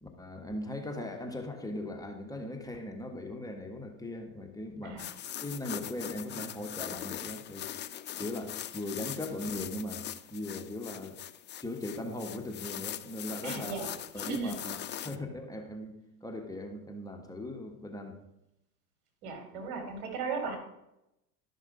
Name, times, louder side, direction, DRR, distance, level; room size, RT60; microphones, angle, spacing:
voice 1, 0.0-7.7 8.2-10.0 10.3-11.2 11.6-13.9 14.1-15.9 16.2-18.2, left 1 dB, 10° left, 2 dB, 1.5 m, -39 dB
sound 1, 5.0-15.2, left 11 dB, 25° left, 0.5 m, -41 dB
voice 2, 13.4-13.9 14.2-14.5 19.2-20.6, right 4 dB, 70° right, 3 dB, 3.4 m, -36 dB
12.5 x 6.3 x 5.1 m, 0.87 s
hypercardioid pair, 100°, 45 cm